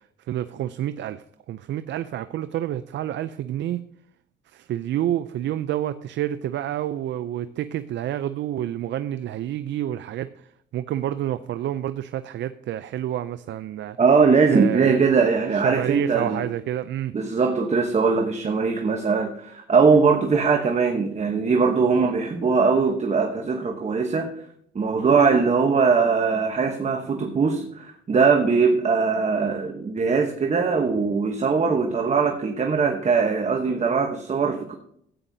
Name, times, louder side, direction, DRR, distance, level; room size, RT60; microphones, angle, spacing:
voice 1, 0.0-3.8 4.5-14.0 14.5-15.0 15.5-17.2, right 12 dB, 65° right, 12 dB, 0.4 m, -29 dB
voice 2, 14.0-16.5 17.1-24.3 24.7-34.7, right 5 dB, 35° right, 4 dB, 1.0 m, -21 dB
14.0 x 9.0 x 2.7 m, 0.70 s
cardioid pair, 90°, 20 cm